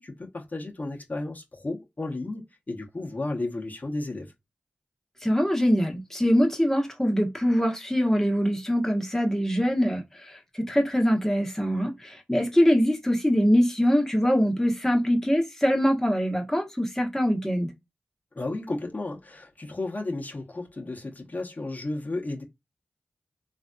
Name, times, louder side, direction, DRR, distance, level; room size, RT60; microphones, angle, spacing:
voice 1, 0.0-4.3 18.3-22.4, left 2 dB, 45° left, 1.0 m, -33 dB
voice 2, 5.2-17.7, equal, 10° left, 1.0 m, -23 dB
3.3 x 2.6 x 2.3 m
cardioid pair, 40°, 4 cm